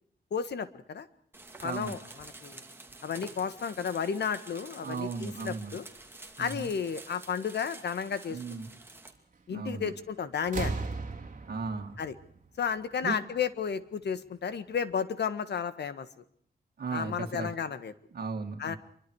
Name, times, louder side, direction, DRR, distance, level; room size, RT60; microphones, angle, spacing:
voice 1, 0.3-1.1 1.6-2.6 3.0-5.8 6.4-8.4 9.5-10.8 12.0-12.1 12.6-16.2 16.9-17.9 18.6-18.8, left 7 dB, 85° left, 12 dB, 1.7 m, -33 dB
sound 1, 1.3-9.1, right 2 dB, 15° right, 2.7 m, -49 dB
voice 2, 1.6-2.0 4.8-5.8 6.4-6.7 8.3-8.7 9.5-9.9 11.5-12.0 13.0-13.2 16.8-17.5 18.1-18.8, right 4 dB, 65° right, 1 dB, 2.3 m, -36 dB
sound 2, 9.8-10.1 10.4-13.2 14.3-14.4, right 3 dB, 50° right, 2.8 m, -37 dB
26.5 x 24.0 x 4.8 m, 0.64 s
wide cardioid pair, 150°, 17 cm